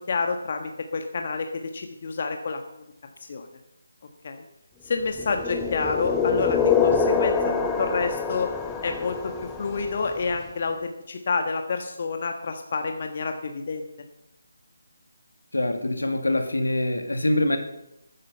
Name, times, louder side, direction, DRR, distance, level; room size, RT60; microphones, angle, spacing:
voice 1, 0.1-1.5 1.7-2.6 3.3-3.5 4.2-4.4 4.8-7.4 7.8-8.5 8.8-9.3 9.6-13.9, left 4 dB, 45° left, 5 dB, 1.4 m, -28 dB
sound 1, 5.2-10.1, left 5 dB, 10° left, 1.1 m, -25 dB
voice 2, 15.5-17.6, left 1 dB, 80° left, 7 dB, 2.1 m, -24 dB
12.5 x 9.9 x 5.5 m, 0.85 s
figure-of-eight pair, 155°, 0 cm